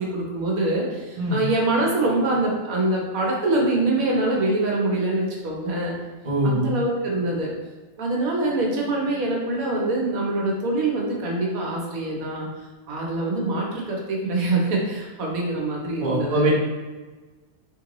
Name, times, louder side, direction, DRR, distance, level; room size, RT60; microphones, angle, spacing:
voice 1, 0.0-5.9 6.4-7.5 8.0-12.5 12.9-16.5, right 2 dB, 75° right, -2 dB, 1.3 m, -24 dB
voice 2, 6.2-6.7 16.0-16.5, right 1 dB, 30° right, -5 dB, 0.7 m, -23 dB
3.8 x 3.1 x 2.9 m, 1.3 s
omnidirectional pair, 1.5 m